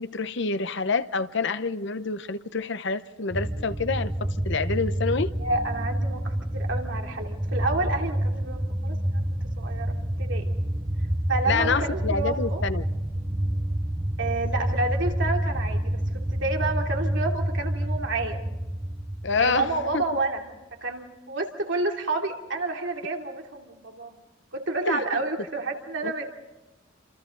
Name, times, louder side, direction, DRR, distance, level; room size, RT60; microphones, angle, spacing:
voice 1, 0.0-4.1 4.5-5.3 11.5-12.8 19.2-19.7 19.9-20.0 24.9-25.2 26.0-26.1, left 4 dB, 65° left, 0.8 m, -27 dB
sound 1, 3.3-20.1, right 1 dB, 15° right, 0.7 m, -28 dB
voice 2, 5.4-9.2 9.6-10.5 11.3-12.6 14.2-18.4 19.3-20.5 20.8-24.2 24.5-26.3, right 2 dB, 65° right, 2.8 m, -30 dB
27.5 x 27.5 x 3.9 m
head